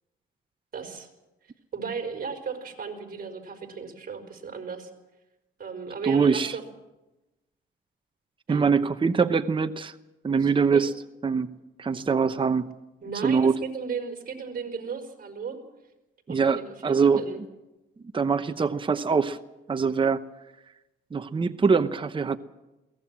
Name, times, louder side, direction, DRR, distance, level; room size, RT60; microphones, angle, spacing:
voice 1, 0.7-1.1 1.7-4.9 5.6-6.6 8.5-8.6 10.4-10.8 13.0-15.6 16.3-17.4, right 5 dB, 45° right, 5 dB, 4.5 m, -35 dB
voice 2, 6.0-6.6 8.5-9.9 10.2-10.9 11.2-12.7 13.2-13.6 16.3-17.2 18.1-19.4 19.7-20.2 21.1-22.4, right 5 dB, 25° right, 9 dB, 0.9 m, -23 dB
22.0 x 18.0 x 7.5 m, 1.0 s
cardioid pair, 90°, 20 cm